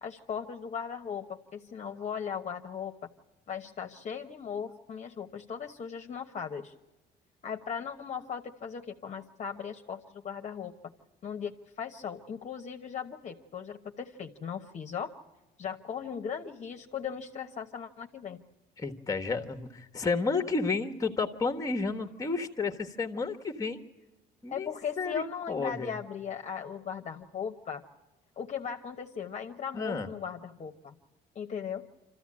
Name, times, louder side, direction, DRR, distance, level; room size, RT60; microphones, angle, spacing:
voice 1, 0.0-2.9 3.5-6.7 7.4-10.7 11.2-15.1 15.6-18.4 24.5-27.8 28.4-31.0 31.3-31.9, left 7 dB, 45° left, 4 dB, 1.2 m, -38 dB
voice 2, 18.8-23.8 24.4-26.0 29.7-30.1, left 4 dB, 20° left, 6 dB, 1.4 m, -31 dB
26.0 x 14.5 x 8.7 m, 1.0 s
cardioid pair, 110°, 17 cm